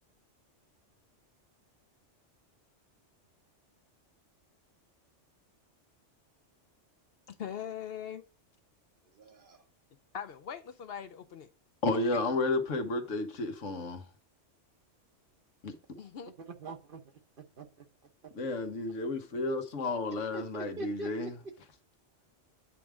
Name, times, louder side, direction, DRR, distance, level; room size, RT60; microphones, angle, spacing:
voice 1, 7.3-8.2 10.1-11.5 12.1-12.2 16.0-16.3, left 8 dB, 60° left, 0.7 m, -41 dB
voice 2, 9.1-9.6 16.5-17.0 17.6-17.8 20.3-21.3, right 3 dB, 50° right, 1.0 m, -43 dB
voice 3, 11.8-14.0 15.6-15.7 18.3-21.3, left 2 dB, 85° left, 1.4 m, -32 dB
8.3 x 3.5 x 6.1 m
omnidirectional pair, 1.2 m